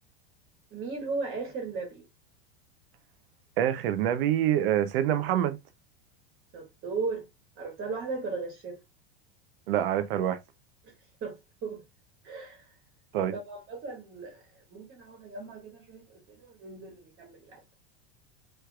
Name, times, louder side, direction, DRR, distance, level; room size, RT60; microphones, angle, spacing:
voice 1, 0.7-2.0 6.5-7.2 7.6-8.8 10.8-10.9 11.2-11.4 11.6-11.8 12.2-12.7 13.3-14.4 14.7-17.6, right 4 dB, 35° right, 1.7 m, -36 dB
voice 2, 3.6-5.6 9.7-10.4 13.1-13.3, right 11 dB, 70° right, 0.7 m, -26 dB
4.5 x 3.2 x 2.3 m
supercardioid pair, 125°, 29 cm